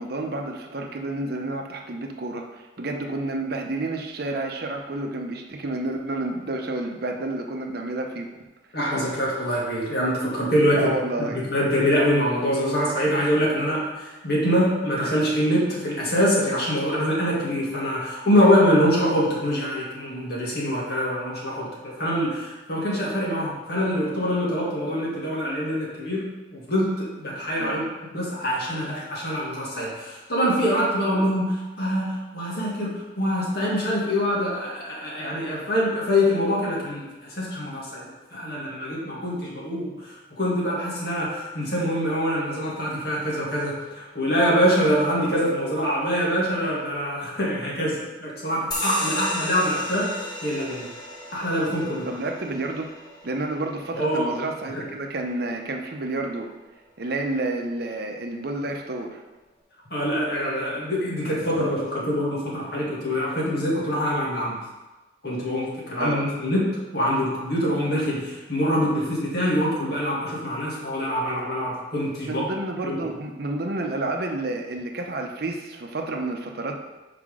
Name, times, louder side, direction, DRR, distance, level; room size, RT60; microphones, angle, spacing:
voice 1, 0.0-8.3 10.8-11.5 27.6-27.9 52.1-52.9 53.2-56.5 57.0-59.2 65.9-66.3 72.2-76.8, right 2 dB, 55° right, 2 dB, 0.7 m, -30 dB
voice 2, 8.7-10.9 11.3-26.3 26.5-27.8 28.1-50.1 50.4-50.9 51.3-52.1 53.9-54.3 54.7-54.8 59.9-64.6 65.2-66.7 66.9-72.5 72.8-73.0, equal, 55° left, -5 dB, 2.0 m, -24 dB
sound 1, 48.7-55.8, left 1 dB, 20° left, 0.9 m, -35 dB
5.7 x 4.9 x 4.9 m, 1.1 s
head